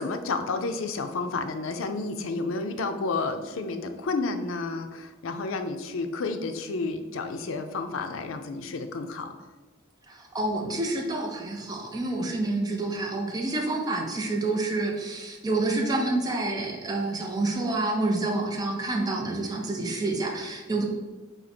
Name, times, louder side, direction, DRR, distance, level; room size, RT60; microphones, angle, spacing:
voice 1, 0.0-9.3, left 3 dB, 85° left, 7 dB, 0.5 m, -31 dB
voice 2, 10.1-20.8, right 2 dB, 20° right, 1 dB, 0.5 m, -28 dB
4.1 x 2.8 x 4.2 m, 1.2 s
head